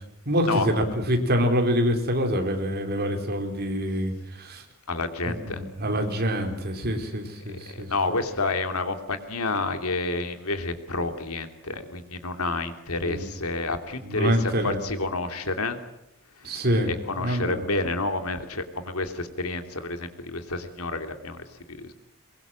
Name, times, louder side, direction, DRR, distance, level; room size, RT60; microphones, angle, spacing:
voice 1, 0.3-4.6 5.2-7.9 13.0-13.3 14.0-14.8 16.4-16.9 17.2-17.6, equal, 50° right, 4 dB, 4.1 m, -26 dB
voice 2, 4.9-5.6 7.5-15.8 16.8-21.9, left 3 dB, 90° left, 7 dB, 2.8 m, -29 dB
22.5 x 22.0 x 7.6 m, 0.85 s
head